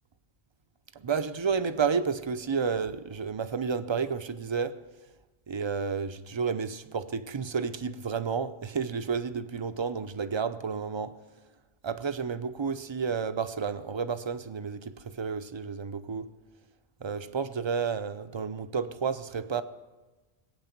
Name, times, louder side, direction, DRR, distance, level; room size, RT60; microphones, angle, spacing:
voice 1, 0.9-4.8 5.5-11.2 11.8-16.3 17.0-19.6, right 6 dB, 35° right, 0.6 m, -31 dB
20.0 x 8.8 x 6.0 m
omnidirectional pair, 1.0 m